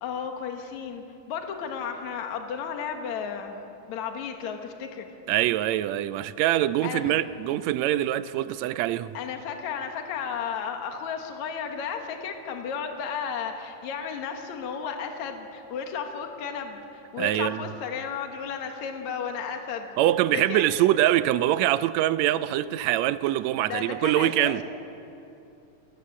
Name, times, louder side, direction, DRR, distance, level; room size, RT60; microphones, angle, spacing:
voice 1, 0.0-3.6 3.9-5.1 6.8-7.2 9.1-20.0 20.3-20.6 23.7-24.6, left 6 dB, 70° left, 2.8 m, -33 dB
voice 2, 5.3-9.2 17.2-17.7 20.0-24.6, right 13 dB, 75° right, 1.8 m, -24 dB
28.5 x 17.0 x 7.5 m
omnidirectional pair, 3.5 m